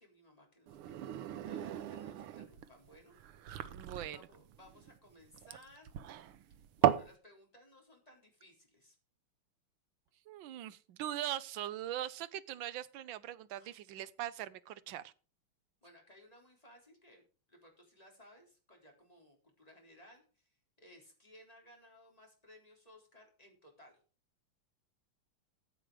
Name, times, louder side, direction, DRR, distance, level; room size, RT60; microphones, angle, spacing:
voice 1, 0.0-3.2 3.5-5.9 6.8-9.0 13.6-13.8 15.8-24.0, left 1 dB, 15° left, 3.9 m, -60 dB
sound 1, 0.7-7.1, right 11 dB, 90° right, 1.7 m, -36 dB
voice 2, 3.7-4.2 10.3-15.1, right 12 dB, 70° right, 1.4 m, -41 dB
14.5 x 7.6 x 5.0 m
omnidirectional pair, 2.4 m